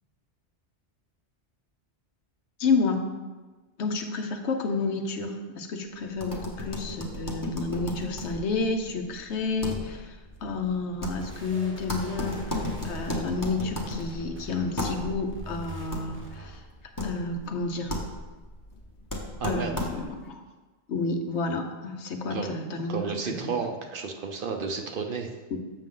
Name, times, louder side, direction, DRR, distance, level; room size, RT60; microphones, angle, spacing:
voice 1, 2.6-3.0 3.8-16.6 17.0-17.9 19.4-20.4 20.9-23.2 23.4-23.6 25.5-25.6, left 3 dB, 75° left, 5 dB, 1.1 m, -30 dB
sound 1, 6.1-20.3, left 2 dB, 20° left, 1.0 m, -35 dB
sound 2, 11.2-16.6, equal, 10° right, 0.9 m, -44 dB
voice 2, 19.4-19.7 22.3-22.5 22.9-25.3, right 5 dB, 55° right, 4 dB, 0.8 m, -32 dB
7.5 x 6.3 x 3.8 m, 1.3 s
omnidirectional pair, 1.2 m